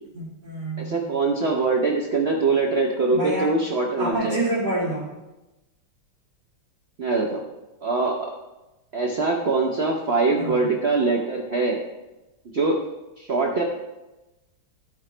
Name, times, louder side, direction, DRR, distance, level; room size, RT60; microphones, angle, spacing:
voice 1, 0.1-1.0 3.1-3.6 4.0-5.1 10.4-10.6, right 1 dB, 45° right, -10 dB, 2.7 m, -27 dB
voice 2, 0.8-4.4 7.0-7.4 7.8-8.3 8.9-11.8 12.5-12.8 13.2-13.6, right 3 dB, 75° right, 0 dB, 0.5 m, -23 dB
14.0 x 5.0 x 3.3 m, 1.0 s
omnidirectional pair, 2.3 m